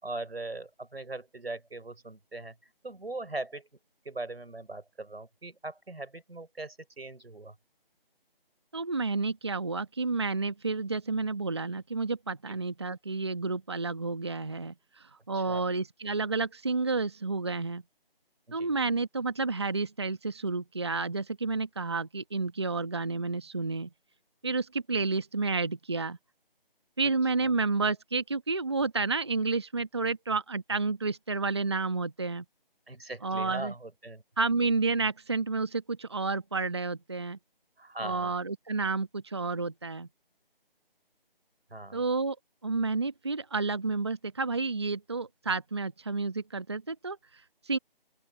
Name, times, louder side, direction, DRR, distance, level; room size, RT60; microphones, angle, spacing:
voice 1, 0.0-2.5 2.8-3.7 4.0-7.5 12.5-12.6 15.3-15.6 18.5-18.7 32.9-34.2 37.8-38.3 41.7-42.0, right 2 dB, 90° right, 5.0 m, -40 dB
voice 2, 8.7-17.8 18.5-23.9 24.4-26.2 27.0-32.4 33.2-33.7 34.4-37.4 38.0-40.1 41.9-42.4 42.6-47.8, right 3 dB, 25° right, 1.1 m, -30 dB
open air
figure-of-eight pair, 170°, 30 cm